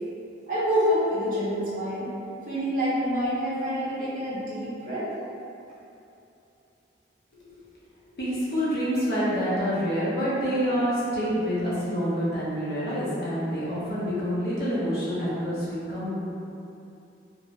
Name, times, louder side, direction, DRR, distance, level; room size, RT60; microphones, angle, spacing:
voice 1, 0.5-2.1 2.5-5.1, equal, 50° right, -11 dB, 0.9 m, -27 dB
voice 2, 8.2-16.2, equal, 60° left, -9 dB, 0.8 m, -27 dB
2.5 x 2.2 x 3.1 m, 2.7 s
head